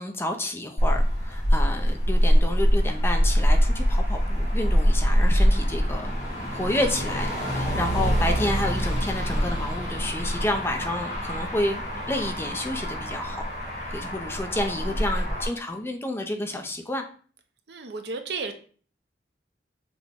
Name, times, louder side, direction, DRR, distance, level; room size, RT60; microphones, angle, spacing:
voice 1, 0.0-6.1 6.5-13.4 13.9-17.0, left 1 dB, 15° left, 4 dB, 0.4 m, -30 dB
Motor vehicle (road), 0.8-15.5, equal, 50° left, 2.1 m, -24 dB
voice 2, 14.8-15.2 17.7-18.5, right 4 dB, 70° right, 6 dB, 0.6 m, -34 dB
6.0 x 2.1 x 3.4 m, 0.42 s
head